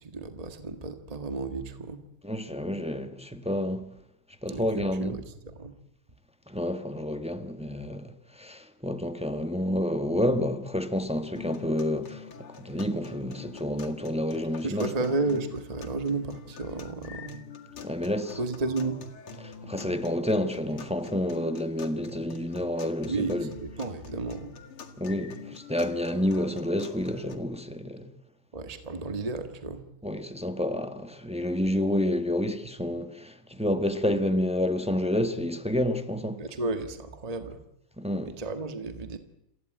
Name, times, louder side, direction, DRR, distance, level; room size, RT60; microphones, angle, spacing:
voice 1, 0.0-2.0 4.5-5.2 5.6-5.7 14.6-17.4 17.8-17.9 18.4-19.0 23.1-24.6 28.5-29.8 36.4-37.6 38.2-39.2, right 3 dB, 20° right, 1.5 m, -32 dB
voice 2, 2.2-3.9 4.4-5.2 6.5-12.3 12.6-14.9 17.8-18.4 19.4-23.5 25.0-28.1 30.0-36.5 38.0-38.4, left 1 dB, 5° right, 1.1 m, -29 dB
sound 1, 11.4-27.4, left 5 dB, 85° left, 2.9 m, -45 dB
28.0 x 15.5 x 9.2 m
omnidirectional pair, 2.3 m